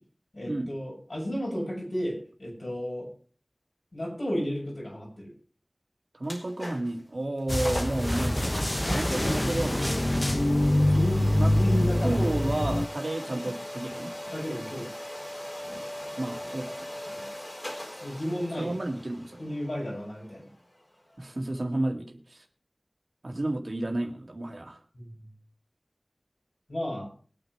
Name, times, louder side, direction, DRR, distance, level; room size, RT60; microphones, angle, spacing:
voice 1, 0.3-3.1 3.9-5.3 8.8-9.4 10.2-10.4 10.8-12.2 14.3-14.9 17.1-17.2 18.0-18.8 19.4-20.5 24.9-25.3 26.7-27.1, equal, 70° left, -2 dB, 7.6 m, -33 dB
sound 1, 6.2-7.0 7.4-7.5 7.6-8.1 8.8-21.6, left 1 dB, 45° left, 4.1 m, -40 dB
voice 2, 6.2-10.0 11.4-11.5 12.0-14.1 16.2-16.9 18.6-19.4 21.2-22.4 23.2-24.8, right 1 dB, 70° right, 3 dB, 2.1 m, -32 dB
sound 2, 7.5-12.9, left 1 dB, 25° left, 0.7 m, -25 dB
22.0 x 9.1 x 3.3 m, 0.42 s
wide cardioid pair, 45°, 0 cm